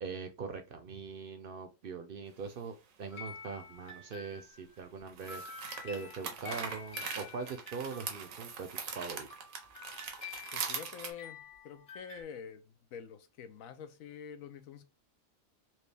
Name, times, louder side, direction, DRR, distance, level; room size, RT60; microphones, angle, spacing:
voice 1, 0.0-5.4 5.8-8.7 8.9-9.3, right 5 dB, 60° right, 0.6 m, -42 dB
sound 1, 2.4-2.5 5.1-11.1, right 6 dB, 90° right, 1.3 m, -41 dB
sound 2, 3.1-4.7 5.3-12.2, left 5 dB, 50° left, 1.6 m, -49 dB
voice 2, 10.5-14.8, left 7 dB, 90° left, 1.1 m, -47 dB
4.4 x 2.7 x 3.3 m
omnidirectional pair, 1.4 m